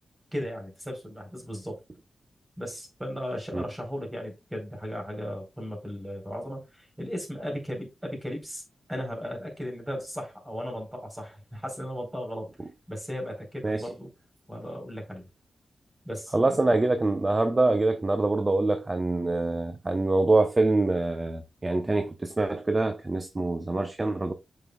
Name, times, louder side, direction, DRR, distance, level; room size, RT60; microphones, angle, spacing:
voice 1, 0.3-1.8 2.6-8.6 8.9-12.5 12.9-14.1 14.5-15.3 16.0-16.7, equal, 10° right, 4.0 m, -36 dB
voice 2, 16.3-24.3, right 2 dB, 30° right, 0.8 m, -25 dB
7.6 x 5.5 x 2.3 m
cardioid pair, 70°, 0 cm